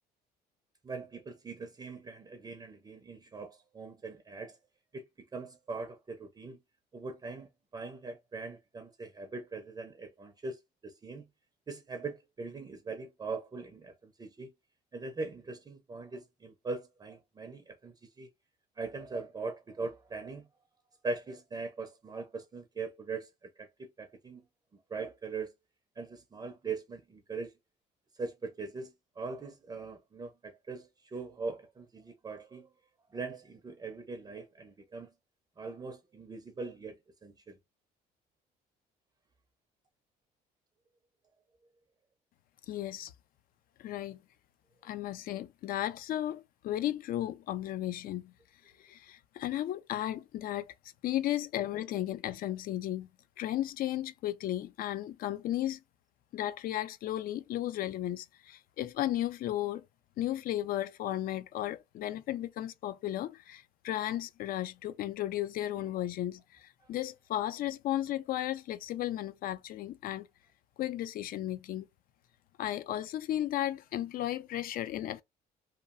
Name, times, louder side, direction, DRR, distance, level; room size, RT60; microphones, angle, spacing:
voice 1, 0.8-4.6 4.9-5.0 5.3-6.6 6.9-11.2 11.7-14.5 14.9-18.3 18.8-20.5 21.0-23.3 23.6-24.4 24.9-25.5 26.0-27.5 28.2-32.7 33.1-35.1 35.6-37.6, right 4 dB, 20° right, 0.5 m, -41 dB
voice 2, 42.7-43.1 43.8-44.2 44.8-48.3 48.8-50.7 51.0-53.1 53.4-55.8 56.3-59.8 60.2-70.3 70.8-71.9 72.6-75.2, left 13 dB, 60° left, 0.4 m, -34 dB
2.9 x 2.3 x 2.4 m
cardioid pair, 110°, 17 cm